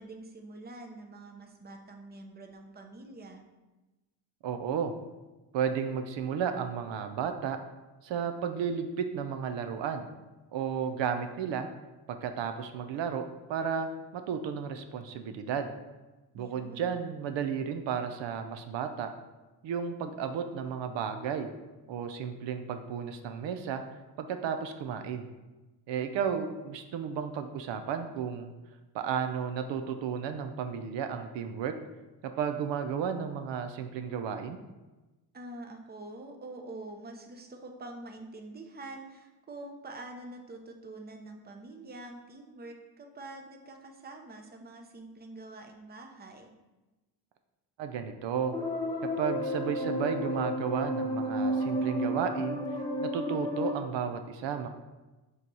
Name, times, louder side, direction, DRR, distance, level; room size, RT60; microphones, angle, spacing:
voice 1, 0.0-3.4 16.3-16.9 35.3-46.5, right 2 dB, 20° right, 4 dB, 0.8 m, -46 dB
voice 2, 4.4-4.9 5.5-7.6 8.0-10.1 10.5-11.7 12.1-13.2 13.5-15.7 16.3-19.1 19.6-21.5 21.9-23.8 24.2-25.3 25.9-28.5 28.9-31.7 32.2-34.6 47.8-48.5 49.2-54.7, right 7 dB, 75° right, 7 dB, 0.6 m, -33 dB
sound 1, 48.5-53.7, equal, 10° left, 0.9 m, -32 dB
5.7 x 3.1 x 5.4 m, 1.1 s
cardioid pair, 100°, 44 cm